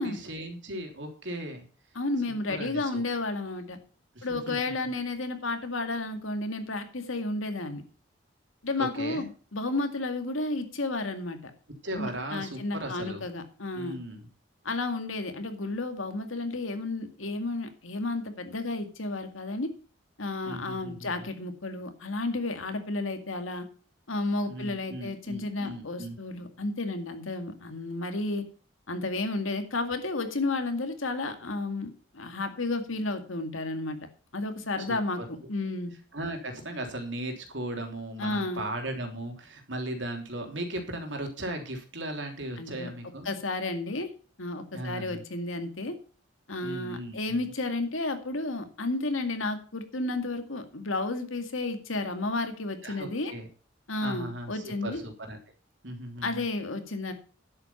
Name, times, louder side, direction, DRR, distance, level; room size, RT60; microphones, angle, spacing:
voice 1, 0.0-1.7 2.3-3.0 4.1-4.6 4.8-4.9 8.8-9.3 11.8-13.3 13.7-14.2 20.4-21.3 24.5-26.2 34.9-35.2 36.1-43.3 44.7-45.2 46.6-47.4 52.8-53.5 54.0-55.4 55.8-56.4, right 1 dB, 70° right, 3 dB, 3.3 m, -37 dB
voice 2, 2.0-3.8 4.2-7.8 8.6-9.2 9.5-11.5 12.0-14.0 14.6-19.7 20.2-23.7 24.1-28.5 28.9-34.0 34.3-35.9 38.2-38.6 42.6-42.9 43.2-44.1 44.4-46.0 46.5-53.3 53.9-55.0 56.2-57.1, left 2 dB, 90° left, 7 dB, 2.2 m, -32 dB
11.0 x 8.3 x 5.7 m, 0.38 s
head